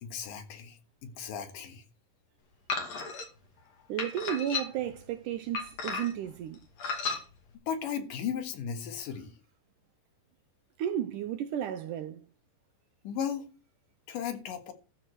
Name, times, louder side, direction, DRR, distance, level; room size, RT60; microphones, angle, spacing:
voice 1, 0.0-1.8 7.0-7.2 7.7-9.3 13.0-13.4 14.1-14.7, left 8 dB, 70° left, 3.1 m, -36 dB
sound 1, 2.7-3.3 4.0-4.9 5.5-6.3 6.8-7.2, left 4 dB, 50° left, 3.3 m, -34 dB
voice 2, 3.9-6.6 10.8-12.2, right 10 dB, 75° right, 2.0 m, -33 dB
13.0 x 4.8 x 7.9 m
omnidirectional pair, 4.2 m